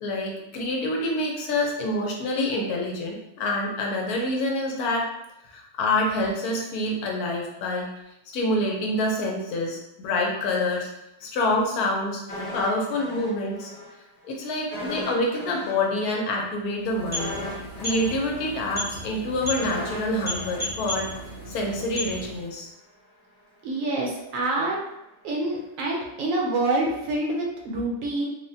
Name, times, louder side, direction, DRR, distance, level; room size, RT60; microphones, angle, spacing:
voice 1, 0.0-5.1 5.4-7.9 8.3-10.9 11.2-12.2 12.5-13.7 14.2-17.4 17.8-21.1 21.5-22.7, left 1 dB, 80° left, 0 dB, 1.1 m, -27 dB
sound 1, 12.3-13.9 14.2-14.3 14.7-21.8 22.1-22.2, left 1 dB, 35° left, 1.2 m, -38 dB
sound 2, 16.8-22.6, equal, 15° left, 0.6 m, -35 dB
voice 2, 23.6-24.8 25.2-28.3, right 2 dB, 70° right, -1 dB, 0.9 m, -26 dB
3.3 x 2.1 x 2.6 m, 0.87 s
omnidirectional pair, 1.6 m